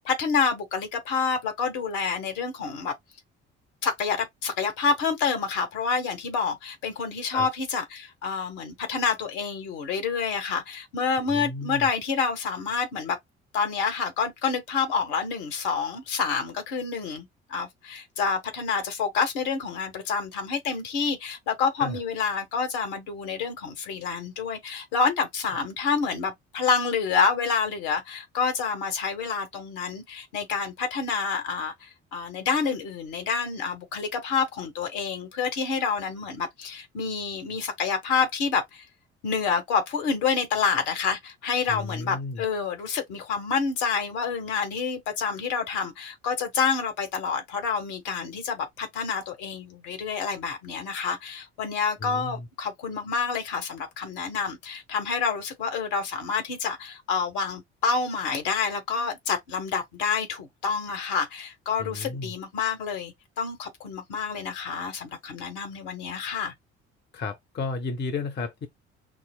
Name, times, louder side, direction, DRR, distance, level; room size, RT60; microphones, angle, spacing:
voice 1, 0.0-2.9 3.8-13.2 13.5-38.8 39.2-66.5, left 5 dB, 60° left, 1.2 m, -28 dB
voice 2, 11.3-11.9 21.8-22.0 41.7-42.4 52.0-52.5 61.8-62.3 67.1-68.7, left 3 dB, 30° left, 0.8 m, -33 dB
5.9 x 2.0 x 2.2 m
figure-of-eight pair, 50°, 34 cm